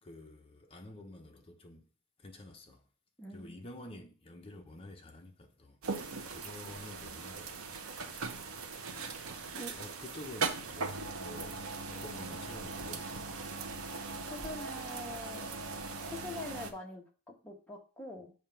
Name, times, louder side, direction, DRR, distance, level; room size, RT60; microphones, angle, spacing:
voice 1, 0.0-1.9 2.2-2.9 3.3-7.7 8.1-8.3 8.9-9.1 9.8-13.3, left 1 dB, 25° left, 0.8 m, -50 dB
voice 2, 3.2-3.5 9.5-9.7 14.3-15.5 16.0-18.3, left 1 dB, 5° left, 1.0 m, -44 dB
sound 1, 5.8-16.7, right 4 dB, 80° right, 0.7 m, -40 dB
7.2 x 2.5 x 5.6 m
head